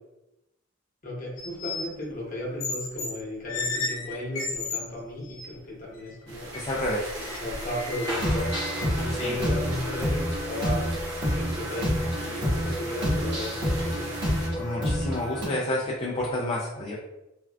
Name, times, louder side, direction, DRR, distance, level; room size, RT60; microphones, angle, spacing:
voice 1, 1.0-6.5 7.4-10.8 11.4-14.1, left 1 dB, 45° left, -4 dB, 1.0 m, -34 dB
sound 1, 1.4-1.9 2.6-3.1 3.4-4.8 5.2-5.5 5.9-6.1 6.5-8.8, left 4 dB, 85° left, 0.7 m, -34 dB
sound 2, 6.3-14.5, right 1 dB, 85° right, 0.7 m, -38 dB
voice 2, 6.5-7.1 9.2-9.3 14.5-16.9, left 1 dB, 30° left, -5 dB, 0.4 m, -29 dB
sound 3, 8.0-15.5, equal, 60° right, 1.2 m, -28 dB
3.4 x 2.3 x 2.3 m, 0.93 s
head